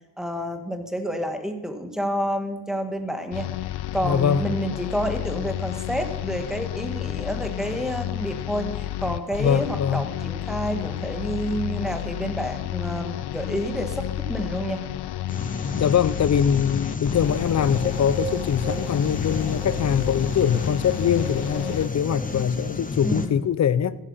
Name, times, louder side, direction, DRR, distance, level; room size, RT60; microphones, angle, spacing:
voice 1, 0.2-3.5 3.9-14.8 23.0-23.4, equal, ahead, 6 dB, 1.8 m, -29 dB
sound 1, 3.3-21.9, left 13 dB, 75° left, 0.8 m, -31 dB
voice 2, 4.0-4.4 9.4-10.1 15.7-24.0, left 8 dB, 45° left, 18 dB, 0.7 m, -23 dB
sound 2, 15.3-23.3, left 3 dB, 20° left, 1.1 m, -32 dB
sound 3, 17.2-23.2, right 3 dB, 20° right, 2.7 m, -37 dB
15.0 x 10.0 x 5.7 m, 1.0 s
cardioid pair, 105°, 39 cm